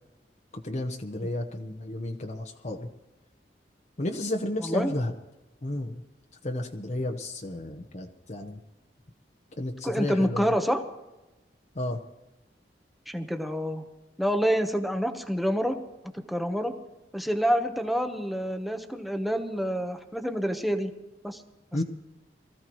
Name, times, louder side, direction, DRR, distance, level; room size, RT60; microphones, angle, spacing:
voice 1, 0.6-2.9 4.0-5.1 5.6-6.0 6.4-8.6 9.6-10.5 11.7-12.0 21.7-21.8, left 1 dB, 40° left, 4 dB, 1.0 m, -32 dB
voice 2, 4.6-4.9 9.8-10.8 13.1-13.8 14.2-15.8 16.1-16.7 17.1-20.9 21.2-21.4, equal, ahead, 6 dB, 1.0 m, -27 dB
23.0 x 15.0 x 3.1 m, 1.0 s
head